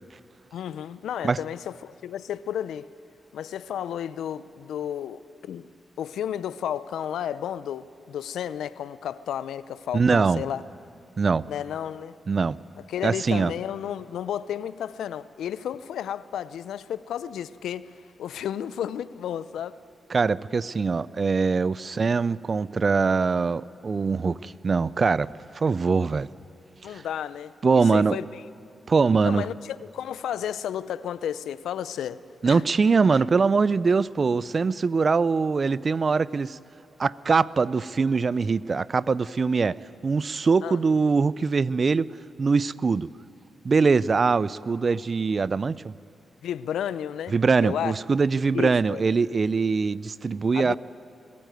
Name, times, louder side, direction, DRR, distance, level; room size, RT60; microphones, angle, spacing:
voice 1, 0.5-2.9 3.3-5.7 6.0-10.6 11.5-12.2 12.8-17.9 18.2-19.8 21.8-22.0 26.8-28.4 29.2-32.2 32.5-32.6 40.6-40.8 46.4-47.3 47.6-47.9 48.5-49.0 50.5-50.7, left 9 dB, 85° left, 0.5 m, -32 dB
voice 2, 9.9-10.4 11.2-11.4 12.3-12.6 13.0-13.5 20.1-25.3 25.5-26.3 26.9-27.0 27.6-28.2 28.9-29.5 32.4-36.6 37.0-39.8 40.0-42.1 42.4-43.1 43.6-45.9 47.3-50.7, right 4 dB, 50° right, 0.5 m, -22 dB
22.0 x 14.0 x 9.2 m
supercardioid pair, 50°, 0 cm